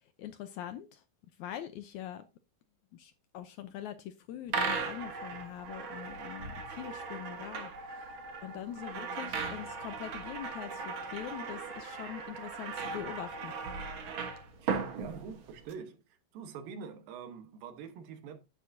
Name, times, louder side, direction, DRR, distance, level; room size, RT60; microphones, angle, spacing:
voice 1, 0.2-1.0 1.4-2.2 2.9-7.7 8.4-13.5, left 11 dB, 75° left, 1.8 m, -43 dB
sound 1, 4.5-15.7, right 5 dB, 55° right, 1.4 m, -38 dB
voice 2, 14.6-16.0 16.3-18.4, right 6 dB, 85° right, 3.0 m, -45 dB
11.0 x 9.1 x 2.7 m
omnidirectional pair, 4.0 m